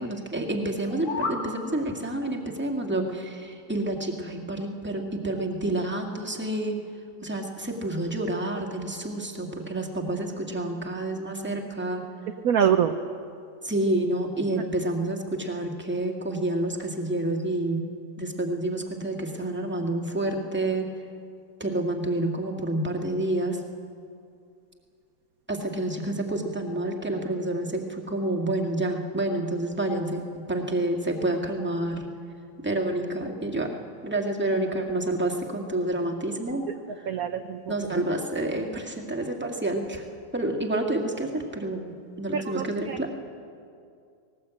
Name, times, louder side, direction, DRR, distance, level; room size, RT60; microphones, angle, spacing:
voice 1, 0.0-6.8 7.2-12.1 13.6-17.9 18.2-20.9 21.6-23.6 25.5-32.1 32.6-33.8 34.0-36.6 36.9-37.2 37.7-40.1 40.3-41.9 42.2-43.1, right 1 dB, 5° right, 1 dB, 1.8 m, -29 dB
sound 1, 0.8-1.5, left 3 dB, 80° left, 2.4 m, -31 dB
voice 2, 12.4-13.0 37.1-38.0 42.3-43.0, right 8 dB, 65° right, 7 dB, 1.0 m, -25 dB
19.0 x 18.5 x 8.2 m, 2.4 s
omnidirectional pair, 2.1 m